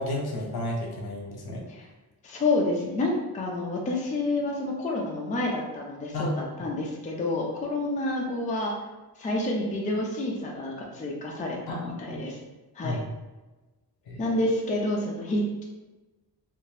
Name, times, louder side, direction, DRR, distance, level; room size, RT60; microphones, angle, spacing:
voice 1, 0.0-1.6 6.1-6.3 11.7-12.2 12.8-13.0 14.1-14.2, left 1 dB, 70° left, -1 dB, 0.8 m, -32 dB
voice 2, 2.2-8.7 9.2-12.4 12.7-13.0 14.2-15.7, left 2 dB, 20° left, -2 dB, 0.4 m, -29 dB
3.6 x 2.4 x 2.7 m, 1.1 s
wide cardioid pair, 155°, 39 cm